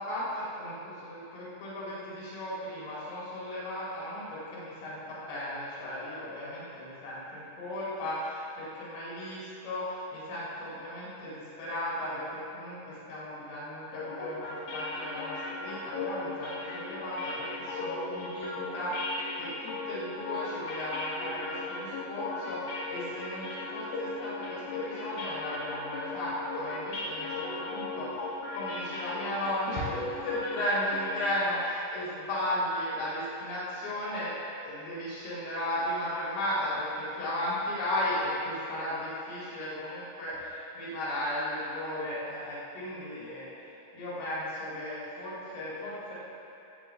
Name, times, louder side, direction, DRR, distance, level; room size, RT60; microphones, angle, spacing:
voice 1, 0.0-34.3 34.6-46.1, left 1 dB, 75° left, -8 dB, 6.2 m, -35 dB
sound 1, 13.9-31.8, left 2 dB, 60° left, 3.4 m, -37 dB
19.0 x 15.5 x 2.5 m, 2.8 s
omnidirectional pair, 5.6 m